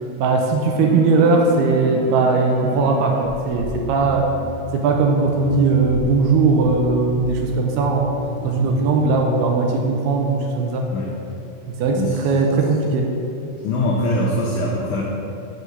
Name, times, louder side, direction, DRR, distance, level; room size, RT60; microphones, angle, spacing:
voice 1, 0.2-4.3 4.7-8.1 8.4-10.9 11.7-13.1, right 3 dB, 80° right, 2 dB, 2.5 m, -19 dB
sound 1, 0.7-4.5 5.3-8.9, right 2 dB, 55° right, 1.9 m, -33 dB
voice 2, 11.9-12.2 13.6-15.0, left 1 dB, 90° left, -3 dB, 1.7 m, -22 dB
7.9 x 4.9 x 6.6 m, 2.8 s
omnidirectional pair, 4.8 m